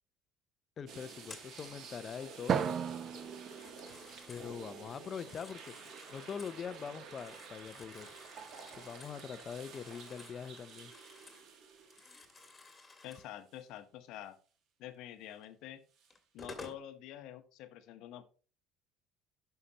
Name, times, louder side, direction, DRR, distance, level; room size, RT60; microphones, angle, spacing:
voice 1, 0.8-2.8 3.1-3.2 4.3-5.8 6.1-8.1 8.6-10.9, left 7 dB, 40° left, 0.6 m, -43 dB
sound 1, 0.9-13.1 13.5-13.6 16.0-16.1, right 5 dB, 60° right, 1.5 m, -51 dB
Telephone, 1.2-1.9 3.4-4.5 5.0-6.6 7.0-11.5 11.8-13.3 15.4-15.5 16.1-16.9, left 3 dB, 20° left, 1.7 m, -54 dB
Drum, 2.5-4.8, right 7 dB, 40° right, 0.5 m, -36 dB
voice 2, 13.0-14.4 14.8-15.8 16.3-18.2, left 12 dB, 70° left, 0.9 m, -47 dB
11.0 x 5.7 x 2.9 m
cardioid pair, 110°, 0 cm